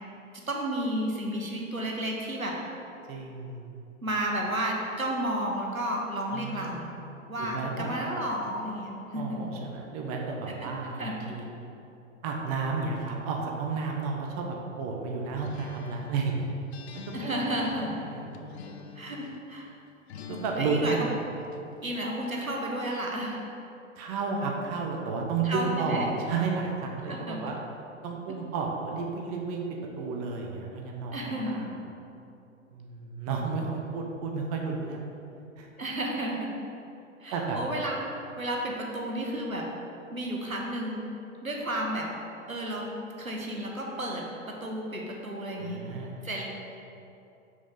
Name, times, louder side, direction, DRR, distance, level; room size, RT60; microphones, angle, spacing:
voice 1, 0.5-2.5 4.0-6.9 7.3-9.4 10.6-10.7 11.0-11.3 17.1-17.9 19.0-19.7 20.5-21.1 21.8-23.4 25.4-26.0 27.1-27.4 31.1-31.6 35.8-36.5 37.2-37.9 38.4-39.6 40.1-41.0 41.4-42.1 42.5-42.8 43.2-44.2 44.6-45.8 46.2-46.4, right 1 dB, 85° right, -1 dB, 1.2 m, -32 dB
voice 2, 3.1-3.6 6.3-6.8 7.4-8.0 9.1-11.5 12.2-16.5 17.1-18.8 20.3-21.2 24.0-27.6 28.0-29.6 30.0-31.2 31.4-31.7 32.7-35.1 35.6-35.7 37.3-37.6 45.6-46.2, right 4 dB, 30° right, 0 dB, 0.7 m, -32 dB
Acoustic guitar, 15.4-19.5 20.1-21.7, left 6 dB, 55° left, 0.5 m, -46 dB
6.1 x 6.0 x 3.8 m, 2.7 s
figure-of-eight pair, 105°, 40 cm